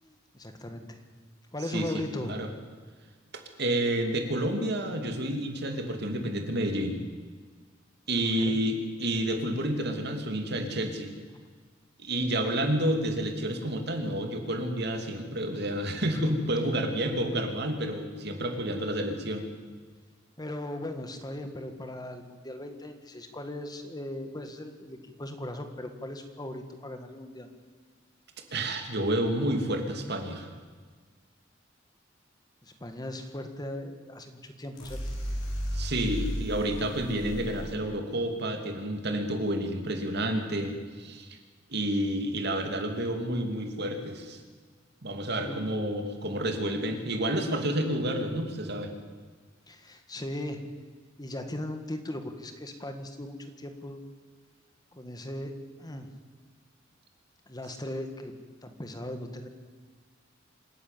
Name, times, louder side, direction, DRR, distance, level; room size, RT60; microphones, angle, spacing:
voice 1, 0.0-1.0 1.5-2.4 8.4-8.6 20.4-27.5 32.6-35.0 35.8-35.9 45.4-45.6 49.7-50.7 51.2-54.0 54.9-55.5 55.8-56.1 57.5-58.3 58.6-59.5, left 1 dB, 20° left, 6 dB, 1.7 m, -38 dB
voice 2, 1.7-2.5 3.6-7.0 8.1-11.1 12.0-19.4 28.5-30.5 35.7-41.4 41.7-44.4 45.0-48.9, right 1 dB, 60° right, 5 dB, 2.7 m, -30 dB
sound 1, 34.7-37.7, equal, 75° left, 5.9 m, -34 dB
27.0 x 11.0 x 9.2 m, 1.5 s
head